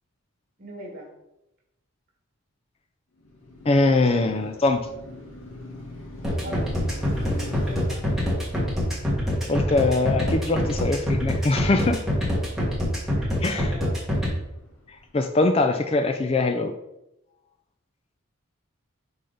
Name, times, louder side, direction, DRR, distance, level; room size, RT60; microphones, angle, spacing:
voice 1, 0.6-1.1 6.3-6.7 7.5-8.1 13.2-14.0, equal, 40° right, 0 dB, 1.8 m, -40 dB
Car passing by, 3.2-15.4, left 1 dB, 85° left, 1.9 m, -41 dB
voice 2, 3.7-4.8 9.5-12.0 13.4-13.7 15.1-16.7, left 2 dB, 25° left, 7 dB, 0.3 m, -22 dB
sound 1, 6.2-14.3, left 1 dB, ahead, 1.4 m, -25 dB
5.8 x 4.0 x 5.0 m, 0.89 s
head